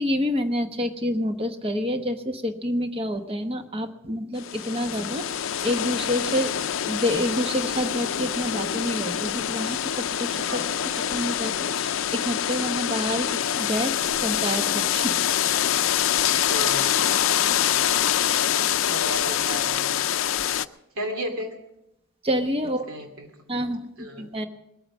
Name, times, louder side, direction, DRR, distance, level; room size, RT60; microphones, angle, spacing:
voice 1, 0.0-6.6 6.8-10.6 11.0-15.2 22.2-22.9 23.5-23.8 24.2-24.5, equal, 25° right, 7 dB, 1.0 m, -28 dB
sound 1, 4.4-20.6, left 10 dB, 65° left, 0.5 m, -25 dB
voice 2, 10.5-10.8 16.5-18.1 18.9-20.0 21.0-21.5 22.6-23.7 24.0-24.3, equal, 75° right, 3 dB, 2.6 m, -35 dB
21.0 x 8.8 x 6.2 m, 0.84 s
head